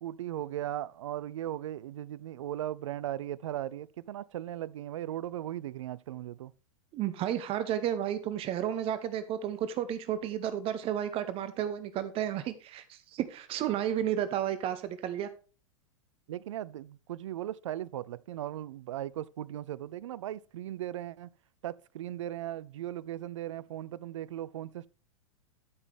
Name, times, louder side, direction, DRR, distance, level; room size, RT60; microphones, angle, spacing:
voice 1, 0.0-6.5 16.3-21.3 21.6-24.9, right 12 dB, 65° right, 0.5 m, -38 dB
voice 2, 6.9-15.3, right 10 dB, 35° right, 0.9 m, -32 dB
13.0 x 6.0 x 3.4 m
figure-of-eight pair, 95°, 17 cm